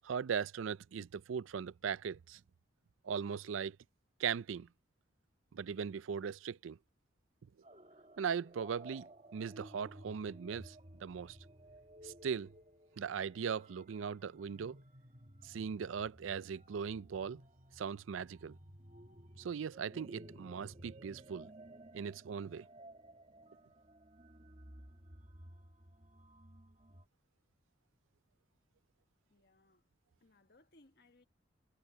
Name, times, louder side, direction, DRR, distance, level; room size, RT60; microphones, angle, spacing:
voice 1, 0.0-2.4 3.0-3.8 4.2-4.7 5.5-6.8 8.2-9.1 9.3-11.4 12.0-12.5 13.0-14.8 15.4-17.4 17.8-18.6 19.4-21.5 21.9-22.6, right 7 dB, 90° right, 0.4 m, -39 dB
sound 1, 7.6-27.1, right 1 dB, 35° right, 1.8 m, -56 dB
voice 2, 29.3-29.8 30.2-31.2, left 2 dB, 55° left, 1.4 m, -66 dB
head